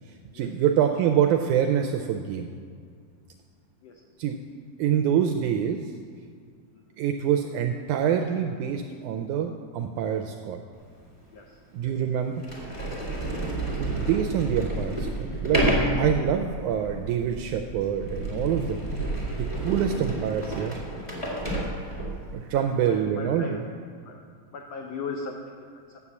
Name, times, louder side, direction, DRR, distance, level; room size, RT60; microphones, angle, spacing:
voice 1, 0.3-2.5 4.2-4.4 4.8-5.8 7.0-10.6 11.7-12.4 13.8-18.8 19.4-20.8 22.3-23.6, right 9 dB, 80° right, 5 dB, 1.8 m, -26 dB
Sliding door, 11.0-11.1 11.8-11.9 12.4-22.3, right 1 dB, 15° left, 1.4 m, -30 dB
voice 2, 11.3-11.9 13.3-13.6 22.5-23.6 24.0-24.2 24.5-26.0, left 4 dB, 85° left, 2 dB, 1.4 m, -39 dB
9.7 x 7.4 x 7.1 m, 2.2 s
omnidirectional pair, 4.0 m